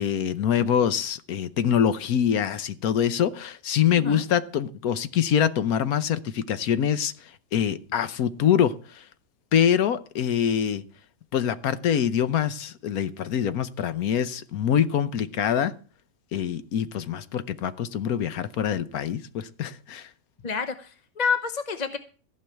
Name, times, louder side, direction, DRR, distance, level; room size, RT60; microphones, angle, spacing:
voice 1, 0.0-9.0 9.5-10.8 11.3-15.7 16.3-20.1, left 9 dB, 75° left, 1.3 m, -25 dB
voice 2, 3.9-4.2 20.4-22.0, left 5 dB, 35° left, 0.8 m, -28 dB
15.0 x 5.5 x 9.1 m
omnidirectional pair, 1.6 m